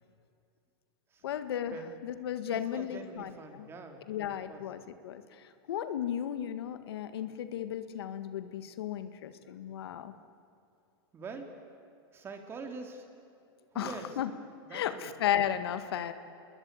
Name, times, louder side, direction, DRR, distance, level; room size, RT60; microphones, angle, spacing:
voice 1, 1.2-3.7 4.1-10.1 13.8-14.3 14.7-16.1, left 10 dB, 85° left, 10 dB, 1.8 m, -35 dB
voice 2, 2.5-4.6 11.1-11.5 12.1-13.1 13.7-14.2 14.7-15.1, right 4 dB, 20° right, 4 dB, 3.0 m, -44 dB
28.5 x 21.0 x 8.9 m, 2.6 s
supercardioid pair, 155°, 13 cm